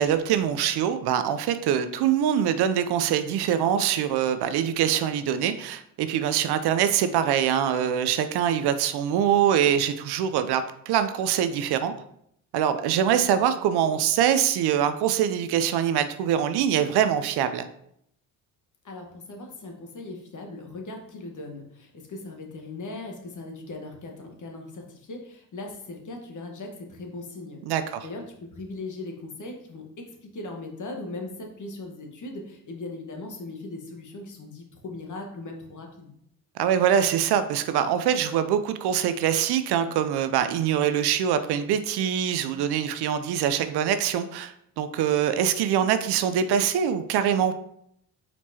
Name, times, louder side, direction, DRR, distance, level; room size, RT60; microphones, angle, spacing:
voice 1, 0.0-11.9 12.5-17.7 27.7-28.1 36.6-47.5, right 9 dB, 65° right, 10 dB, 0.5 m, -24 dB
voice 2, 18.8-27.6 28.0-36.1, left 2 dB, 45° left, 2 dB, 1.3 m, -39 dB
4.4 x 4.3 x 2.8 m, 0.71 s
hypercardioid pair, 55°, 44 cm